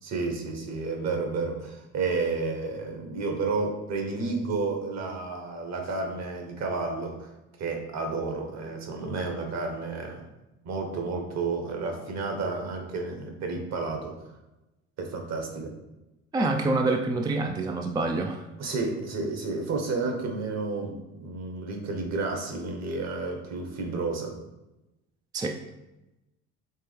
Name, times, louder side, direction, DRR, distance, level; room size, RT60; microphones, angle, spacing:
voice 1, 0.0-7.3 7.6-10.2 10.6-14.1 15.0-15.7 18.6-24.3, right 3 dB, 55° right, 3 dB, 1.2 m, -31 dB
voice 2, 16.3-18.5 25.3-25.6, right 2 dB, 15° right, 4 dB, 0.3 m, -26 dB
4.6 x 3.3 x 3.3 m, 0.97 s
supercardioid pair, 75°, 32 cm